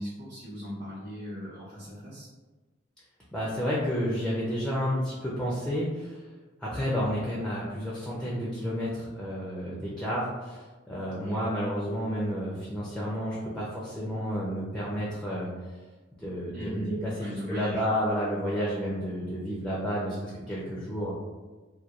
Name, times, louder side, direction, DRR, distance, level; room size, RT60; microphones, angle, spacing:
voice 1, 0.0-2.3 11.2-11.4 16.5-17.8, equal, 40° right, -10 dB, 0.6 m, -38 dB
voice 2, 3.3-6.2 6.6-15.5 16.2-20.2 20.5-21.1, equal, 5° left, -6 dB, 0.4 m, -31 dB
2.8 x 2.2 x 2.3 m, 1.3 s
head